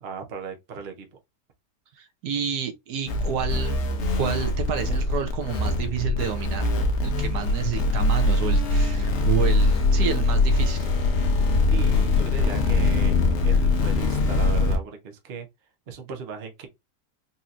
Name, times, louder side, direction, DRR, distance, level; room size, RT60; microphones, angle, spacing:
voice 1, 0.0-1.1 11.7-15.5 15.9-16.7, right 5 dB, 50° right, 0.9 m, -37 dB
voice 2, 2.0-3.8 4.2-6.6 7.0-11.0, right 8 dB, 75° right, 1.2 m, -30 dB
sound 1, 3.1-14.8, left 2 dB, 55° left, 0.9 m, -22 dB
4.1 x 2.8 x 2.4 m
omnidirectional pair, 1.8 m